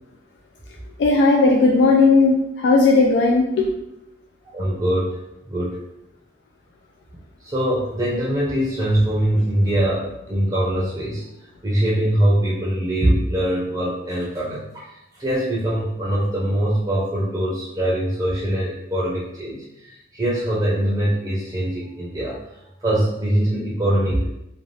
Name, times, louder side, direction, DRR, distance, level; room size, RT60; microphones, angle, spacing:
voice 1, 1.0-3.7, left 3 dB, 85° left, -1 dB, 0.3 m, -16 dB
voice 2, 4.5-5.1 5.5-5.7 7.4-11.2 11.6-14.9 15.2-19.6 20.1-22.4 22.8-24.3, right 1 dB, 25° right, -5 dB, 0.6 m, -22 dB
2.6 x 2.3 x 3.1 m, 0.87 s
head